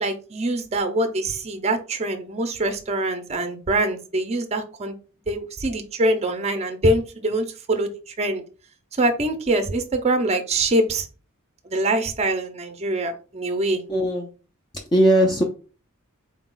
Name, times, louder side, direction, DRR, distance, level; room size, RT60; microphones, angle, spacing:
voice 1, 0.0-5.0 5.3-8.4 9.0-11.1 11.6-13.8, right 1 dB, 30° right, 7 dB, 0.5 m, -24 dB
voice 2, 13.9-14.3 14.9-15.4, right 1 dB, 20° left, 1 dB, 0.4 m, -18 dB
3.9 x 2.3 x 3.7 m, 0.35 s
head